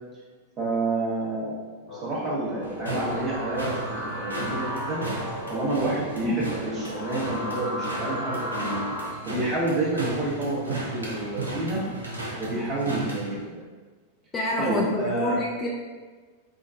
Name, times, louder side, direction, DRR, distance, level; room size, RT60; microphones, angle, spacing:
voice 1, 0.6-1.5 1.8-5.1 5.5-11.8 12.4-13.6 14.6-15.4, right 2 dB, 25° right, -6 dB, 0.9 m, -29 dB
sound 1, 1.9-9.1, equal, 70° left, 1.3 m, -35 dB
sound 2, 2.6-13.4, right 2 dB, 80° right, 0.5 m, -35 dB
voice 2, 14.3-15.7, left 1 dB, 20° left, -4 dB, 0.4 m, -27 dB
3.5 x 2.1 x 2.5 m, 1.4 s
figure-of-eight pair, 90°, 0 cm